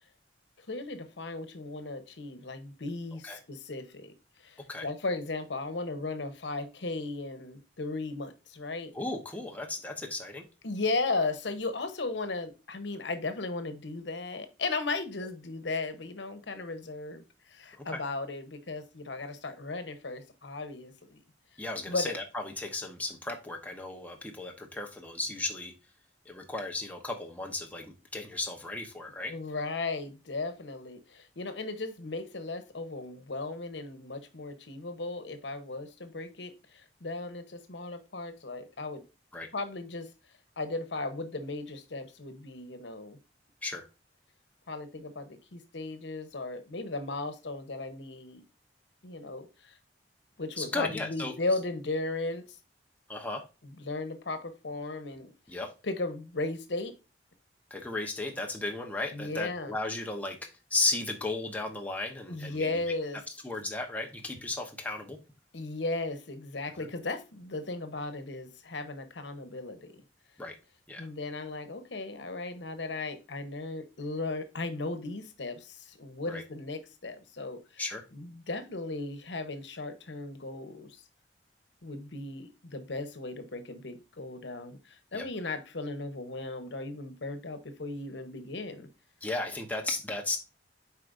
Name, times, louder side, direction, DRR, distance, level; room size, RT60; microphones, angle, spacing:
voice 1, 0.6-4.1 4.4-8.9 10.6-21.2 21.9-22.1 29.3-39.0 39.5-40.1 40.6-43.2 44.7-48.4 49.0-49.8 50.4-52.4 53.6-55.3 55.8-56.9 59.1-59.8 62.3-63.2 65.5-70.0 71.0-77.8 78.1-81.0 81.8-88.9, left 3 dB, 85° left, 10 dB, 1.0 m, -36 dB
voice 2, 8.9-10.4 17.8-18.0 21.6-25.7 26.3-29.3 39.3-39.5 43.6-43.9 50.6-51.3 53.1-53.4 55.5-55.7 57.7-62.7 63.4-65.2 66.8-66.9 70.4-70.6 70.9-71.1 76.3-76.4 77.8-78.0 85.1-85.3 89.2-90.4, left 2 dB, 10° left, 2 dB, 0.9 m, -35 dB
8.3 x 4.8 x 2.6 m, 0.29 s
head